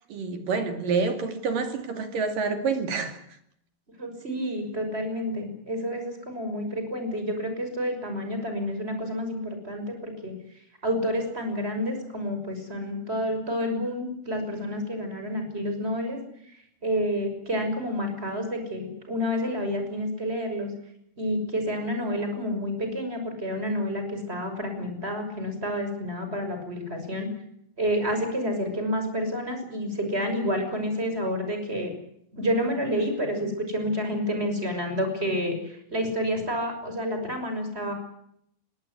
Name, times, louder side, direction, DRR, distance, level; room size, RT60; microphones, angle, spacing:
voice 1, 0.1-3.2, right 4 dB, 55° right, 3.7 m, -27 dB
voice 2, 4.0-10.3 10.8-16.2 16.8-20.7 21.2-27.3 27.8-31.9 32.3-37.9, equal, 15° right, 5.9 m, -29 dB
22.0 x 17.5 x 9.7 m
omnidirectional pair, 5.3 m